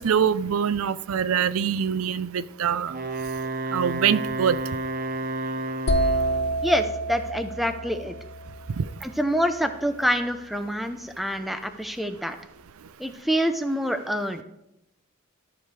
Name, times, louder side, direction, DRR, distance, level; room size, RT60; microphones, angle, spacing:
voice 1, 0.0-2.9 3.7-4.6 8.8-8.9, right 7 dB, 85° right, 16 dB, 0.4 m, -24 dB
Wind instrument woodwind instrument, 2.9-6.6, right 2 dB, 40° right, 0.7 m, -31 dB
sound 1, 5.9-9.7, right 1 dB, 50° left, 0.6 m, -28 dB
voice 2, 6.6-8.2 9.0-12.4 13.0-14.4, equal, ahead, 8 dB, 0.5 m, -26 dB
13.5 x 5.1 x 4.7 m, 0.87 s
head